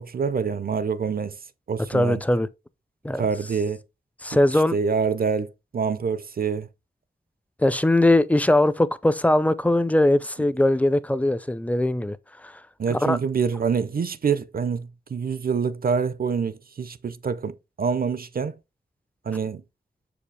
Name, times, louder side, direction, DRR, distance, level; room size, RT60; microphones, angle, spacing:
voice 1, 0.0-1.4 1.7-2.2 3.1-3.8 4.7-6.7 12.8-18.5 19.3-19.6, right 6 dB, 60° right, 0.5 m, -26 dB
voice 2, 1.9-2.5 3.0-3.3 4.2-4.8 7.6-12.2 12.4-12.6 12.9-13.2, left 1 dB, 10° left, 0.5 m, -20 dB
6.7 x 5.0 x 3.3 m
wide cardioid pair, 100°, 17 cm